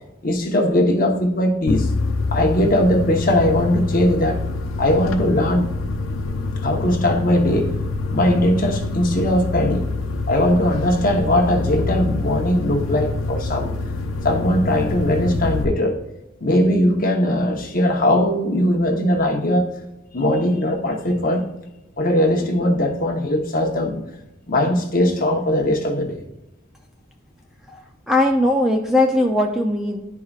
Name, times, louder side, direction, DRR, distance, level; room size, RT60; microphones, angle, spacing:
voice 1, 0.2-1.9 2.3-4.4 4.8-5.7 6.6-7.8 8.1-9.9 10.3-13.7 14.2-16.0 16.4-19.7 20.1-21.5 22.0-24.0 24.5-26.2, left 1 dB, 45° left, 1 dB, 1.0 m, -19 dB
sound 1, 1.7-15.6, left 3 dB, 90° left, 0.7 m, -26 dB
voice 2, 27.7-30.1, left 1 dB, 5° right, 2 dB, 0.4 m, -19 dB
11.0 x 4.7 x 2.4 m, 0.95 s
head